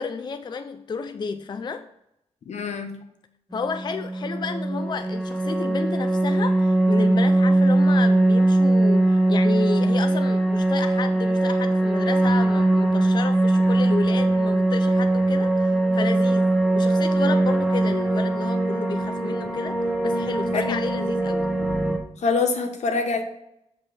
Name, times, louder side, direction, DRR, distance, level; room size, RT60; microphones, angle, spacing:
voice 1, 0.0-1.9 3.5-21.5, left 5 dB, 40° left, 9 dB, 0.4 m, -31 dB
voice 2, 2.5-3.0 20.5-20.8 22.2-23.2, left 4 dB, 75° left, 6 dB, 1.0 m, -25 dB
sound 1, 3.5-22.0, right 2 dB, ahead, 0.9 m, -21 dB
6.3 x 5.3 x 4.2 m, 0.81 s
cardioid pair, 95°, 12 cm